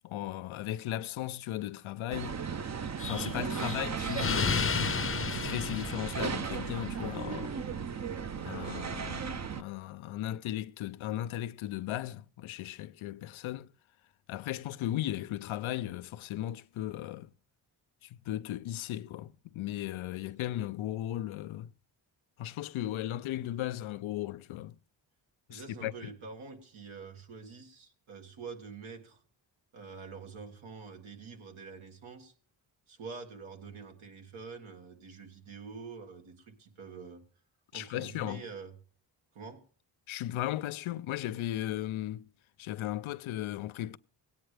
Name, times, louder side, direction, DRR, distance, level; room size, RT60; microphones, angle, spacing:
voice 1, 0.0-2.4 3.0-4.7 5.3-7.5 8.4-13.7 14.3-17.3 18.0-21.7 22.4-24.8 25.5-25.9 37.7-38.4 40.1-42.3 42.6-44.0, left 13 dB, 80° left, 0.6 m, -36 dB
sound 1, 2.1-9.6, right 6 dB, 35° right, 0.6 m, -36 dB
Explosion, 3.0-6.8, left 5 dB, 30° left, 0.7 m, -33 dB
voice 2, 25.5-29.2 29.7-32.3 32.9-37.2 37.7-38.7 39.3-39.6, right 5 dB, 85° right, 1.9 m, -46 dB
17.0 x 9.2 x 3.3 m
cardioid pair, 60°, 47 cm